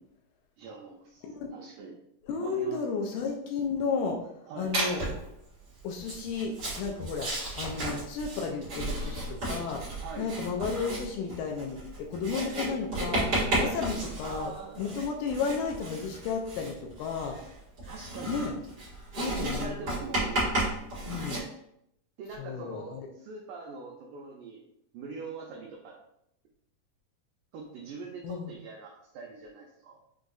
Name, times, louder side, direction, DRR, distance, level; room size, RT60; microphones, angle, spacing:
voice 1, 0.6-1.2 1.5-2.0 2.4-2.8 4.5-4.7 7.8-8.0 10.0-10.3 13.6-13.8 14.2-14.9 17.9-18.4 19.1-20.5 21.0-21.3 22.2-24.7 24.9-26.0 27.5-30.0, right 4 dB, 90° right, -2 dB, 1.8 m, -42 dB
voice 2, 2.2-4.2 4.6-5.0 5.8-7.3 7.6-9.8 10.2-17.4 18.3-18.5 19.2-19.8 21.1-21.4 22.4-23.1 28.2-28.6, left 5 dB, 80° left, 2 dB, 2.2 m, -33 dB
Writing, 4.7-5.3 6.0-21.4, right 1 dB, 45° right, 1.2 m, -33 dB
6.3 x 2.6 x 2.3 m, 0.76 s
omnidirectional pair, 4.2 m